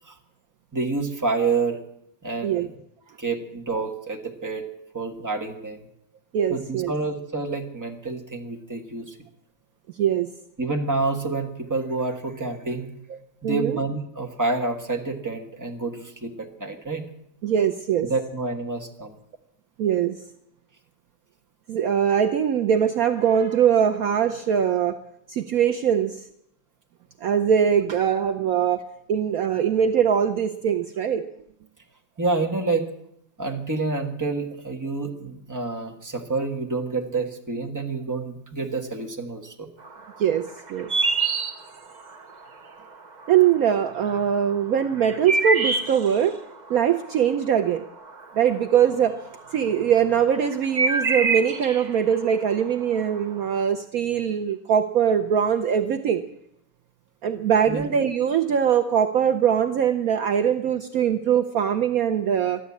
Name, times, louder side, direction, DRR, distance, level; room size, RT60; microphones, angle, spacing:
voice 1, 0.7-1.8 2.2-2.7 3.2-4.6 4.9-5.8 6.5-9.2 10.6-12.9 13.4-17.0 18.0-19.2 32.2-32.9 33.4-39.7 57.7-57.8, right 3 dB, 10° right, 2 dB, 1.4 m, -28 dB
voice 2, 6.3-6.9 10.0-10.3 13.4-13.8 17.4-18.1 19.8-20.2 21.7-25.0 25.3-26.2 27.2-28.8 29.1-31.3 40.2-40.9 43.3-46.4 46.7-47.8 48.4-49.2 49.5-56.2 57.2-62.6, right 8 dB, 65° right, 6 dB, 1.1 m, -22 dB
sound 1, 39.8-42.4 42.8-43.5 43.9-49.0 49.3-53.6, right 3 dB, 30° right, 0.9 m, -26 dB
14.0 x 11.0 x 8.4 m, 0.74 s
omnidirectional pair, 1.8 m